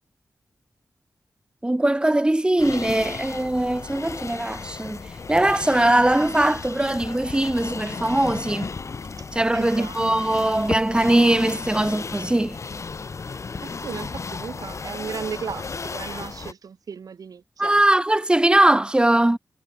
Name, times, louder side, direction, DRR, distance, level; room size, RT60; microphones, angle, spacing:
voice 1, 1.6-5.0 5.3-8.7 9.3-12.6 17.6-19.4, right 1 dB, 15° right, 2.4 m, -20 dB
sound 1, 2.6-16.5, left 4 dB, 55° left, 1.8 m, -34 dB
voice 2, 9.5-10.0 13.6-17.8, right 6 dB, 80° right, 5.7 m, -35 dB
cardioid pair, 75°, 6 cm